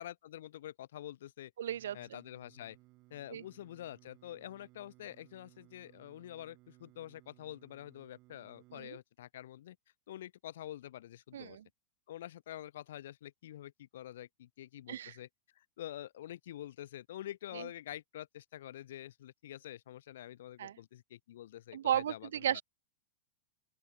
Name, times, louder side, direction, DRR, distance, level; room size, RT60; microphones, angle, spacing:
voice 1, 0.0-1.5 1.9-2.8 3.1-9.8 10.1-11.6 12.1-15.3 15.6-22.6, left 12 dB, 60° left, 0.4 m, -47 dB
voice 2, 1.6-2.2 3.3-3.4 8.7-9.0 11.3-11.6 14.9-15.2 17.5-17.7 20.6-20.8 21.7-22.6, right 10 dB, 60° right, 0.3 m, -35 dB
Singing, 1.7-8.9, right 21 dB, 40° right, 0.7 m, -63 dB
open air
figure-of-eight pair, 90°, 0 cm